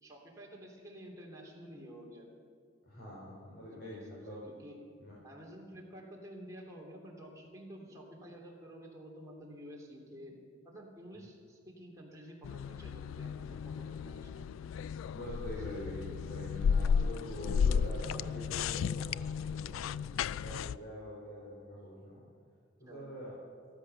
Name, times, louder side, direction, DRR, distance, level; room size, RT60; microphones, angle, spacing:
voice 1, 0.0-2.3 3.7-4.7 5.2-10.3 10.6-14.5 15.8-15.9 22.9-23.0, equal, 15° right, -2 dB, 3.0 m, -50 dB
voice 2, 2.8-4.4 5.0-5.1 15.0-22.2 22.8-23.3, equal, 55° left, -6 dB, 4.4 m, -44 dB
sound 1, 12.4-20.8, left 6 dB, 85° left, 0.3 m, -34 dB
14.0 x 13.5 x 6.8 m, 2.1 s
head